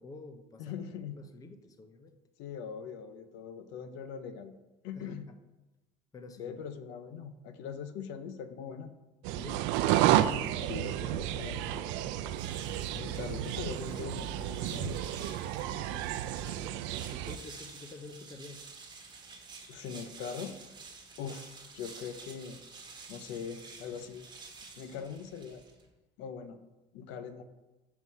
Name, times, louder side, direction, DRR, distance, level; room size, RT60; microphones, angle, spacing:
voice 1, 0.0-2.2 4.9-5.4 6.1-6.6 9.3-9.7 10.1-12.1 15.5-18.6, left 3 dB, 20° left, 7 dB, 0.5 m, -50 dB
voice 2, 0.6-1.2 2.4-4.5 4.8-5.3 6.4-8.9 10.7-11.6 12.9-15.0 19.7-20.6 21.2-22.6 23.1-24.3 24.8-25.6 26.2-26.6 26.9-27.4, left 7 dB, 75° left, 10 dB, 0.6 m, -41 dB
sound 1, 9.2-17.4, right 12 dB, 85° right, 0.4 m, -31 dB
sound 2, 12.2-25.9, right 4 dB, 25° right, 1.3 m, -50 dB
5.5 x 4.6 x 5.4 m, 1.1 s
cardioid pair, 145°, 19 cm